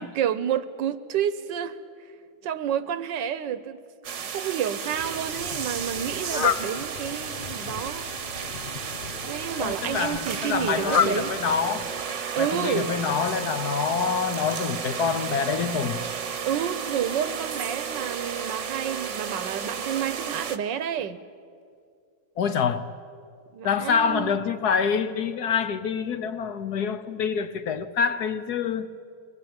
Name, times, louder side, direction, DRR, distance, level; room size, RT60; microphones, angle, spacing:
voice 1, 0.0-1.8 2.4-3.8 4.3-8.0 9.3-11.3 12.3-12.9 16.4-21.2 23.5-24.4, right 9 dB, 80° right, 1.5 m, -29 dB
sound 1, 4.0-20.6, right 7 dB, 45° right, 1.1 m, -33 dB
Fowl, 4.9-12.2, left 7 dB, 80° left, 0.4 m, -32 dB
voice 2, 9.6-11.9 12.4-16.0 22.4-22.9 23.6-28.9, left 6 dB, 60° left, 1.3 m, -26 dB
23.0 x 19.0 x 8.9 m
omnidirectional pair, 2.0 m